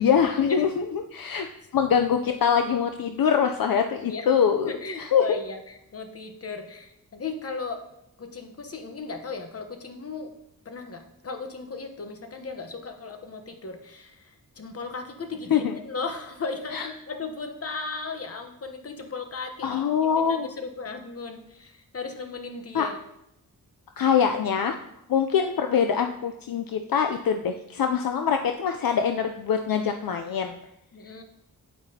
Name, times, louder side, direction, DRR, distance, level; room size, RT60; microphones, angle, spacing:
voice 1, 0.0-1.5 1.7-5.2 15.5-15.8 16.7-16.9 19.6-20.5 22.7-22.9 24.0-24.8 25.1-30.6, left 7 dB, 65° left, 5 dB, 0.5 m, -24 dB
voice 2, 4.6-7.8 8.2-10.3 10.6-19.9 20.2-23.0 30.9-31.2, left 4 dB, 40° left, 5 dB, 1.0 m, -36 dB
8.8 x 8.8 x 2.8 m, 0.80 s
wide cardioid pair, 160°, 37 cm